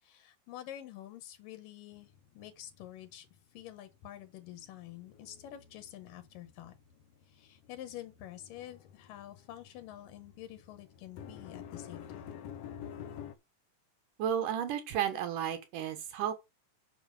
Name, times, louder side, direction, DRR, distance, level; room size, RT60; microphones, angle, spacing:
voice 1, 0.0-3.3 3.5-6.7 7.3-12.4, left 12 dB, 90° left, 2.9 m, -48 dB
sound 1, 1.9-3.6 3.9-13.3, left 9 dB, 70° left, 1.4 m, -50 dB
voice 2, 14.2-16.3, right 9 dB, 75° right, 2.9 m, -33 dB
7.1 x 5.2 x 6.5 m
omnidirectional pair, 3.8 m